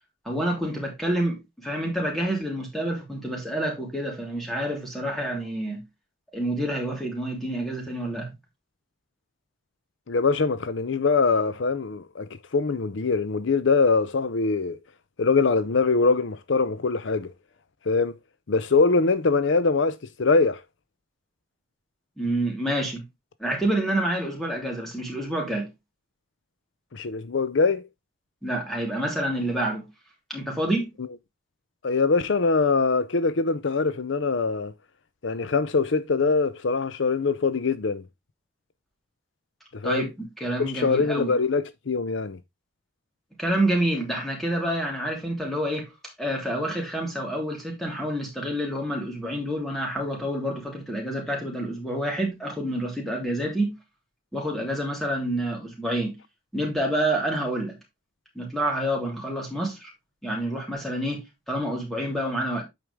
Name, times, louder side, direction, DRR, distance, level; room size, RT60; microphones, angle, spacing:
voice 1, 0.3-5.8 6.3-8.3 22.2-23.0 23.4-25.7 28.4-29.9 30.3-30.9 39.8-41.3 43.4-45.9 46.2-53.7 54.3-56.2 56.5-57.8 58.4-59.9 60.2-62.6, right 1 dB, ahead, 3.3 m, -28 dB
voice 2, 10.1-14.8 15.2-17.3 17.9-18.2 18.5-20.6 26.9-27.9 31.8-34.7 35.2-38.0 39.7-40.1 40.6-42.4, left 4 dB, 65° left, 0.6 m, -23 dB
9.2 x 4.9 x 3.5 m
head